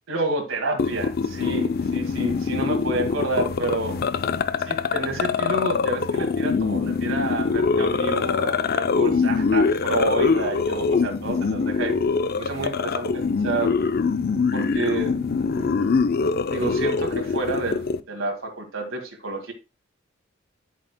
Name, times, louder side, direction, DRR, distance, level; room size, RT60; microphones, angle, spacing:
voice 1, 0.1-4.0 4.7-12.0 12.4-13.7 14.5-15.2 15.5-16.0 16.5-19.5, right 2 dB, 70° right, 4 dB, 2.0 m, -29 dB
sound 1, 0.8-18.0, left 4 dB, 50° left, 0.5 m, -24 dB
10.0 x 7.4 x 2.2 m, 0.27 s
head